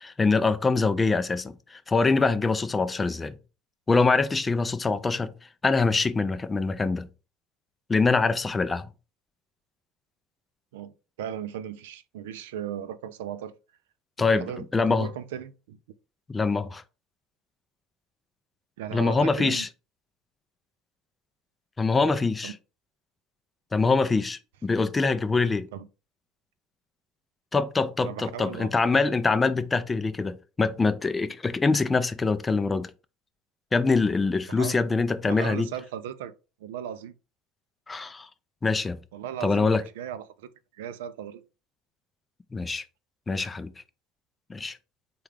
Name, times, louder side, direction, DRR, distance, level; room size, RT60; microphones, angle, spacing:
voice 1, 0.0-3.4 3.9-5.3 5.6-7.1 7.9-8.9 14.2-15.1 16.3-16.8 18.9-19.7 21.8-22.5 23.7-25.7 27.5-32.9 33.7-35.7 37.9-38.3 38.6-39.0 39.4-39.8 42.5-42.8 43.3-43.7 44.5-44.8, left 4 dB, 20° left, 0.4 m, -24 dB
voice 2, 10.7-13.5 14.3-15.8 18.8-19.7 22.4-22.5 25.7-25.9 28.0-28.7 34.5-34.8 35.2-36.3 36.6-37.1 39.1-41.4, right 9 dB, 90° right, 0.3 m, -37 dB
3.5 x 2.3 x 3.3 m
supercardioid pair, 100°, 0 cm